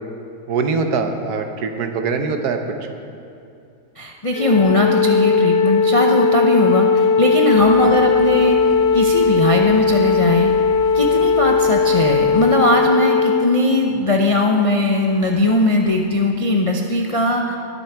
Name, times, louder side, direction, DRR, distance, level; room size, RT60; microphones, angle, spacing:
voice 1, 0.5-2.9 7.8-8.0, right 4 dB, 75° right, 6 dB, 1.4 m, -23 dB
voice 2, 4.0-8.6 8.9-10.5 10.9-17.6, left 1 dB, 45° left, 0 dB, 0.4 m, -19 dB
Wind instrument woodwind instrument, 4.3-13.5, left 5 dB, 80° left, 1.2 m, -17 dB
sound 1, 7.5-12.5, right 4 dB, 40° right, 1.2 m, -39 dB
20.0 x 7.0 x 4.5 m, 2.5 s
omnidirectional pair, 1.7 m